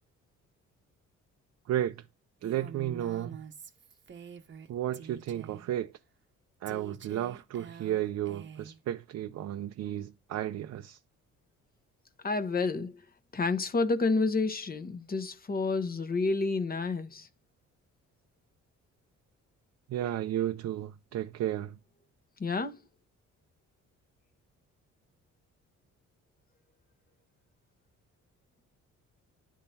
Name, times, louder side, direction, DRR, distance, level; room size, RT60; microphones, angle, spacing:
voice 1, 1.7-2.0 2.4-3.4 4.7-5.9 6.6-11.0 19.9-21.8, right 12 dB, 60° right, 0.6 m, -33 dB
Female speech woman speaking, 2.4-4.7 4.9-5.7 6.7-8.8, right 6 dB, 40° right, 0.9 m, -47 dB
voice 2, 12.2-13.0 13.3-17.3 22.4-22.8, left 3 dB, 30° left, 0.9 m, -29 dB
10.5 x 3.7 x 2.8 m
cardioid pair, 90°, 30 cm